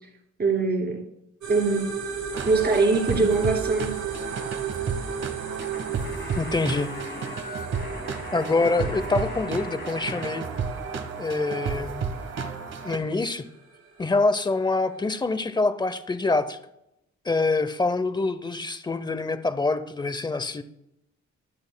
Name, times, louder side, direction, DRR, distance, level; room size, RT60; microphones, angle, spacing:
voice 1, 0.4-1.0 1.5-1.8 2.4-3.9, right 3 dB, 35° right, 2 dB, 2.3 m, -22 dB
sound 1, 1.4-15.1, right 7 dB, 90° right, 3.9 m, -36 dB
sound 2, 2.3-13.0, right 5 dB, 60° right, 1.2 m, -32 dB
sound 3, 5.6-10.2 10.5-12.5, left 4 dB, 40° left, 1.8 m, -42 dB
voice 2, 6.4-6.9 8.3-10.5 11.2-12.0 12.8-13.4 14.0-16.6 17.2-20.6, left 3 dB, 15° left, 11 dB, 0.6 m, -25 dB
22.5 x 7.7 x 2.2 m, 0.83 s
wide cardioid pair, 150°, 29 cm